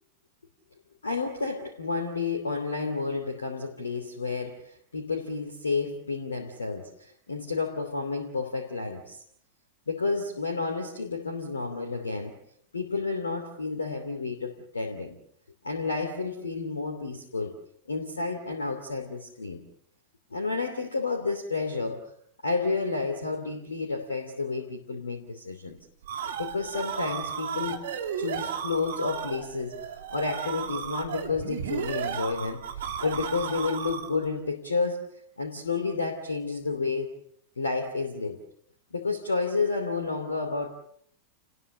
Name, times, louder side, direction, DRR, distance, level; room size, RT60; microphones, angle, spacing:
voice 1, 1.0-9.2 9.9-12.3 12.7-15.2 15.6-17.5 17.9-19.6 20.3-22.1 22.4-25.8 26.4-27.8 28.2-32.6 33.0-37.1 37.6-38.4 38.9-40.7, left 4 dB, 75° left, 5 dB, 2.9 m, -31 dB
sound 1, 25.8-34.3, right 8 dB, 60° right, 2.9 m, -34 dB
29.5 x 20.5 x 6.6 m, 0.67 s
figure-of-eight pair, 90°, 0 cm